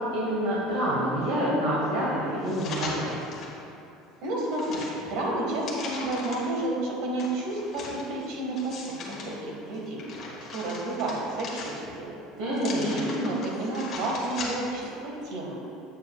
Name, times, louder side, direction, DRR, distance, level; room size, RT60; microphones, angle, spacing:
voice 1, 0.0-3.2 12.4-13.0, equal, 85° right, -8 dB, 1.7 m, -27 dB
sound 1, 2.4-3.6 4.0-6.6 7.2-9.3 9.7-12.0 12.5-14.8 15.2-15.3, left 3 dB, 35° left, 1.4 m, -39 dB
voice 2, 4.2-8.8 9.0-10.2 10.5-12.1 12.6-15.6, right 2 dB, 65° right, -2 dB, 1.6 m, -31 dB
9.3 x 7.8 x 2.4 m, 2.7 s
cardioid pair, 165°, 0 cm